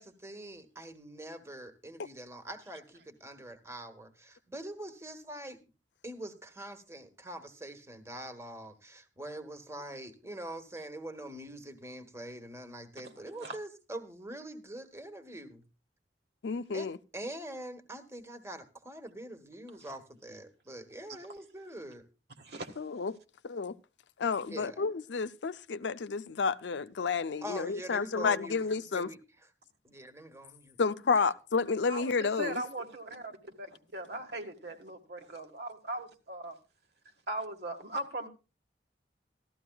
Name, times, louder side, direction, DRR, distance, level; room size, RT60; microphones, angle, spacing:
voice 1, 0.0-5.6 6.0-15.6 16.7-16.9 17.1-22.1 24.5-24.9 27.4-28.6 28.9-29.5 29.8-30.8 31.1-31.3, right 1 dB, 15° right, 1.3 m, -44 dB
voice 2, 16.4-17.0 22.8-23.2 23.4-23.7 24.2-29.1 30.8-32.6, left 5 dB, 85° left, 0.5 m, -30 dB
voice 3, 22.4-22.7 31.9-36.6 37.3-38.3, right 1 dB, 65° right, 1.6 m, -39 dB
16.0 x 13.5 x 2.3 m
head